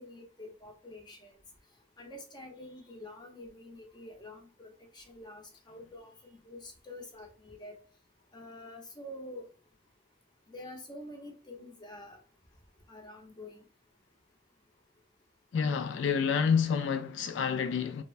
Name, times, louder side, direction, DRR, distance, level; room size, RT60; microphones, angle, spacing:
voice 1, 0.0-1.4 2.0-7.7 8.3-9.5 10.5-12.2 12.9-13.6, left 1 dB, 25° left, 0.7 m, -47 dB
voice 2, 15.5-18.0, left 6 dB, 70° left, 0.3 m, -28 dB
3.1 x 2.1 x 2.4 m
head